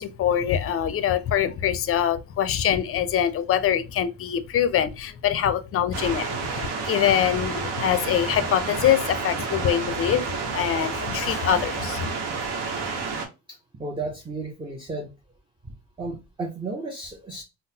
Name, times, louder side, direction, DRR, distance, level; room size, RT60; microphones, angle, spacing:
voice 1, 0.0-12.1, left 9 dB, 40° left, 0.4 m, -24 dB
sound 1, 5.9-13.3, right 4 dB, 75° right, 0.9 m, -30 dB
voice 2, 13.5-15.1 16.0-17.4, right 3 dB, 15° right, 0.5 m, -33 dB
3.8 x 2.0 x 2.7 m
supercardioid pair, 100°, 37 cm